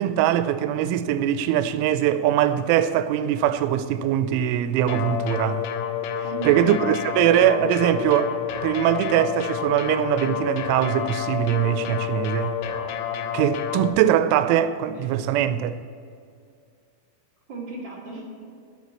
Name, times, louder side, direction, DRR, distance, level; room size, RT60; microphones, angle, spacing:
voice 1, 0.0-5.7 6.5-8.3 8.6-12.6 13.3-15.8, right 10 dB, 90° right, 3.1 m, -22 dB
sound 1, 4.9-13.9, left 8 dB, 80° left, 3.2 m, -29 dB
voice 2, 6.2-6.8 15.0-15.1 17.5-18.4, right 2 dB, 40° right, 1.6 m, -36 dB
11.0 x 7.8 x 8.2 m
omnidirectional pair, 5.4 m